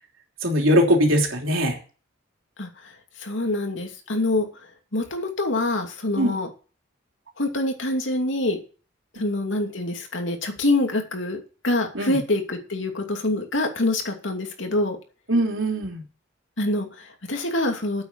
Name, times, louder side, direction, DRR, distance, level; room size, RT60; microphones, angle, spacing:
voice 1, 0.4-1.8 6.2-6.4 11.9-12.2 15.3-16.0, equal, 85° right, 2 dB, 3.5 m, -21 dB
voice 2, 3.2-4.5 4.9-6.5 7.4-8.6 9.1-15.0 16.6-18.0, left 2 dB, 70° left, 3 dB, 2.6 m, -25 dB
8.9 x 8.0 x 7.4 m, 0.36 s
head